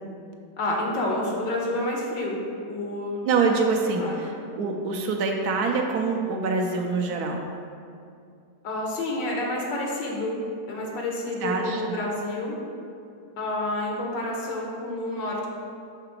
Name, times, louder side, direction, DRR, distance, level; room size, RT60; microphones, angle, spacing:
voice 1, 0.6-3.3 3.8-4.3 8.6-12.6 13.4-15.5, left 1 dB, 85° left, -2 dB, 1.7 m, -29 dB
voice 2, 3.2-4.3 4.6-7.4 11.4-11.9, right 4 dB, 70° right, 2 dB, 1.1 m, -25 dB
5.8 x 3.8 x 5.8 m, 2.5 s
omnidirectional pair, 1.9 m